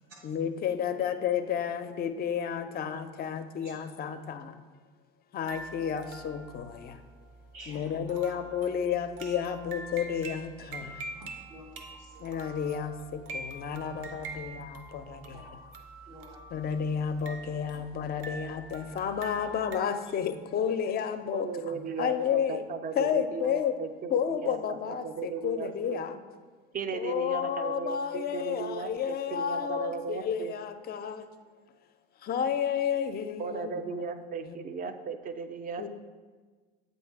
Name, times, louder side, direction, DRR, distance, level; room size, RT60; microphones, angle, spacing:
voice 1, 0.2-4.6 5.3-7.0 7.7-11.0 12.2-15.4 16.5-22.6 22.9-23.7 24.1-26.2 26.9-31.3 32.2-34.6 35.8-35.9, left 8 dB, 30° left, 10 dB, 0.5 m, -31 dB
sound 1, 5.5-19.8, right 2 dB, 70° right, 0.7 m, -45 dB
voice 2, 7.5-8.3 10.8-12.2 15.3-15.5 16.1-16.4 19.4-19.5, right 1 dB, 85° right, -1 dB, 1.4 m, -51 dB
voice 3, 21.3-26.0 26.7-30.5 33.4-35.9, right 5 dB, 30° right, 9 dB, 0.4 m, -36 dB
7.7 x 2.7 x 4.5 m, 1.4 s
hypercardioid pair, 70°, 29 cm